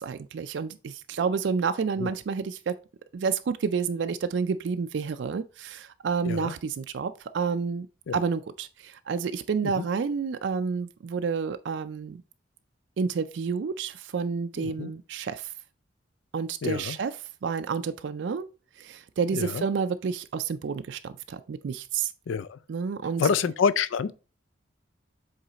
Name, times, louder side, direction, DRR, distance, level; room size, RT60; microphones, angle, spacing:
voice 1, 0.0-2.8 3.1-7.9 8.1-12.2 13.0-15.5 16.3-17.1 17.4-18.5 18.8-22.1 22.7-23.2, right 5 dB, 70° right, 0.4 m, -29 dB
voice 2, 14.6-14.9 16.6-17.0 19.3-19.6 22.3-22.6 23.2-24.1, left 6 dB, 80° left, 0.4 m, -27 dB
7.8 x 3.2 x 3.9 m
head